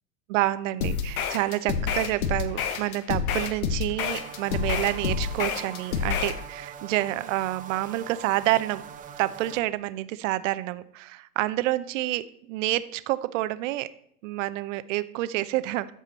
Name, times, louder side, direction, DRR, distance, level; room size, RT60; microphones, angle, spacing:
voice 1, 0.3-8.8 9.2-13.9 14.2-15.9, right 16 dB, 55° right, 15 dB, 0.7 m, -28 dB
sound 1, 0.8-6.4, left 6 dB, 65° left, 1.3 m, -28 dB
sound 2, 4.1-9.6, right 8 dB, 20° right, 0.6 m, -43 dB
14.0 x 5.0 x 4.1 m, 0.70 s
hypercardioid pair, 110°, 46 cm